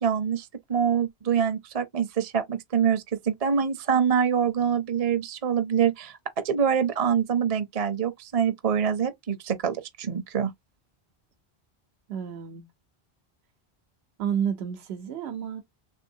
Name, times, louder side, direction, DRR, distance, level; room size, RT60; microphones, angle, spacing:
voice 1, 0.0-6.2 6.4-10.5, right 7 dB, 40° right, 0.6 m, -25 dB
voice 2, 12.1-12.7 14.2-15.6, right 8 dB, 85° right, 1.0 m, -30 dB
3.4 x 2.7 x 2.6 m
omnidirectional pair, 1.1 m